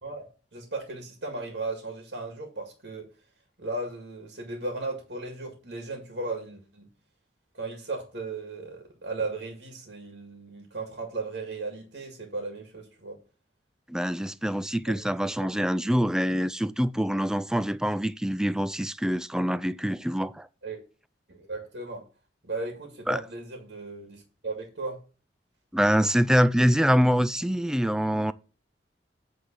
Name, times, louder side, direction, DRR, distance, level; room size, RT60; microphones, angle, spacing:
voice 1, 0.0-3.1 3.6-6.9 7.5-13.2 14.9-15.0 15.2-15.7 20.6-20.8 21.3-22.0 22.4-25.0, right 3 dB, 75° right, 1.9 m, -36 dB
voice 2, 13.9-20.5 23.1-23.2 25.7-28.3, equal, 5° right, 0.3 m, -25 dB
8.7 x 3.7 x 6.6 m
head